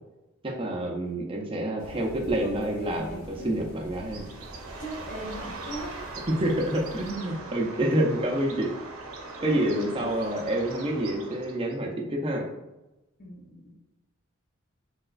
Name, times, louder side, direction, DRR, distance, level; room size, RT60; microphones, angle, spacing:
voice 1, 0.4-4.3 6.4-8.7 9.4-12.4, right 1 dB, 25° right, 0 dB, 0.5 m, -28 dB
sound 1, 1.8-7.1, equal, 65° left, 0.9 m, -45 dB
voice 2, 2.4-3.5 4.8-6.0 7.2-7.4 7.9-8.0 9.4-10.5 13.2-13.7, equal, 40° left, -3 dB, 0.6 m, -40 dB
Bird, 4.0-11.7, right 3 dB, 85° right, 0.6 m, -41 dB
3.2 x 2.9 x 2.3 m, 1.0 s
head